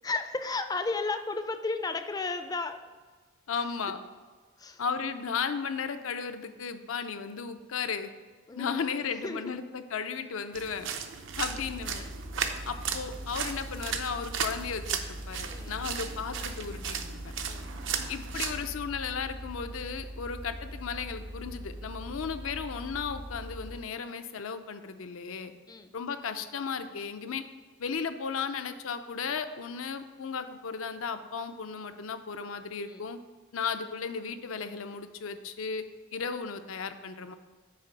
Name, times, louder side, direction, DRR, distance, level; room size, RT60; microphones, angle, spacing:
voice 1, 0.0-2.8 3.5-3.6 4.6-4.8 8.5-9.5 11.9-12.1 15.5-15.8 17.4-17.7 25.7-25.9 32.9-33.1, left 3 dB, 20° left, 8 dB, 0.4 m, -34 dB
voice 2, 3.5-4.0 4.8-8.1 8.6-10.9 11.4-12.0 12.7-17.0 18.1-25.5 25.9-27.4 27.8-33.2 33.5-35.8 36.1-37.3, left 6 dB, 70° left, 9 dB, 0.5 m, -35 dB
sound 1, 10.5-18.6, right 7 dB, 65° right, 0.6 m, -36 dB
sound 2, 11.3-23.8, equal, 90° right, 1.0 m, -42 dB
6.5 x 4.4 x 5.4 m, 1.4 s
head